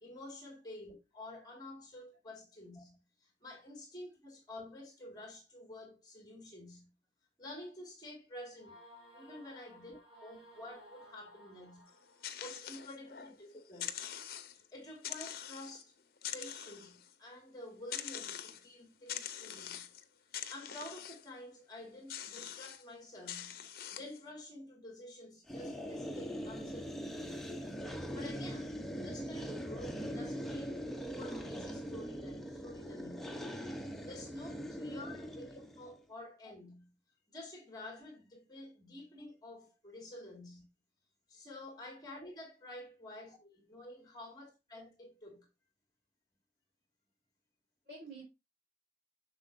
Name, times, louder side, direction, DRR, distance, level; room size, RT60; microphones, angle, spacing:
voice 1, 0.0-6.9 7.4-8.7 9.1-11.9 12.4-14.0 14.5-15.9 16.3-19.9 20.5-23.6 23.9-27.4 28.1-30.7 31.2-33.4 34.0-36.9 37.3-40.6 41.3-45.5, left 1 dB, 20° left, 2.0 m, -50 dB
sound 1, 8.6-12.4, equal, 25° right, 4.9 m, -57 dB
sound 2, 11.9-13.4 13.7-14.7 15.0-15.8 16.2-17.1 17.9-18.7 19.1-20.0 20.3-21.3 22.1-22.8 23.3-24.2, left 10 dB, 55° left, 0.7 m, -44 dB
sound 3, 25.5-35.9, equal, ahead, 0.7 m, -41 dB
voice 2, 47.9-48.2, right 2 dB, 70° right, 3.9 m, -51 dB
7.6 x 6.3 x 2.6 m
head